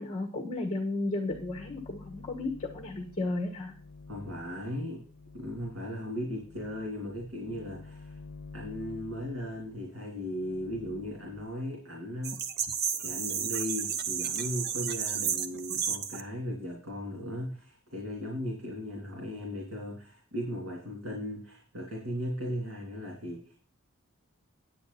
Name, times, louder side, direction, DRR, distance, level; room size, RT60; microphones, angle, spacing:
voice 1, 0.0-3.7, left 2 dB, 30° left, 3 dB, 1.4 m, -33 dB
sound 1, 1.3-11.5, left 3 dB, 50° left, 1.0 m, -50 dB
voice 2, 4.1-5.0 5.3-8.2 8.5-12.4 12.9-23.5, equal, 75° right, -2 dB, 3.2 m, -37 dB
sound 2, 12.2-16.2, right 7 dB, 50° right, 0.8 m, -32 dB
10.0 x 8.5 x 4.2 m, 0.42 s
head